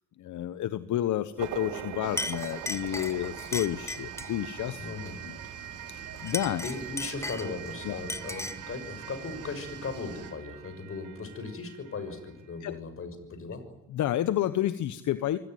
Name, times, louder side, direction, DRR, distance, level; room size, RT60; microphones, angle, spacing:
voice 1, 0.2-4.8 5.9-6.6 7.9-8.0 12.6-12.7 13.9-15.4, left 12 dB, 75° left, 13 dB, 1.1 m, -30 dB
sound 1, 1.4-12.5, right 11 dB, 80° right, 2.3 m, -43 dB
Chink clink, 1.7-1.9 2.2-4.4 6.2-7.7 8.1-8.7, left 2 dB, 10° left, 1.0 m, -36 dB
sound 2, 2.0-10.3, right 5 dB, 50° right, 4.5 m, -48 dB
voice 2, 4.7-5.2 6.6-13.7, left 4 dB, 45° left, 10 dB, 6.3 m, -38 dB
25.0 x 17.5 x 9.5 m, 0.95 s
cardioid pair, 90°, 30 cm